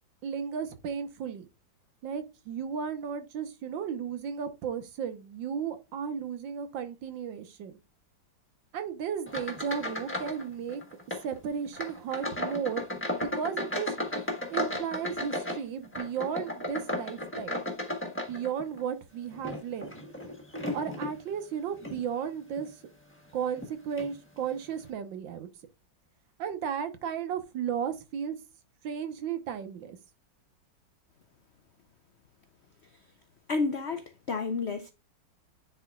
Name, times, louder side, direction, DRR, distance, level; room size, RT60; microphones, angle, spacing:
voice 1, 0.2-1.5 2.0-7.7 8.7-10.8 11.2-12.8 13.2-14.0 14.5-17.6 18.3-20.0 20.7-22.8 23.3-25.5 26.4-28.4 28.8-30.0, right 7 dB, 80° right, 1.7 m, -34 dB
sound 1, 9.3-10.4 10.7-11.3 11.7-18.8 19.3-21.2 21.8-22.0 22.6-22.7 23.6-23.7 24.0-24.1, left 1 dB, 10° left, 1.1 m, -34 dB
voice 2, 33.5-34.9, left 4 dB, 90° left, 0.5 m, -30 dB
9.5 x 4.4 x 2.3 m
omnidirectional pair, 2.1 m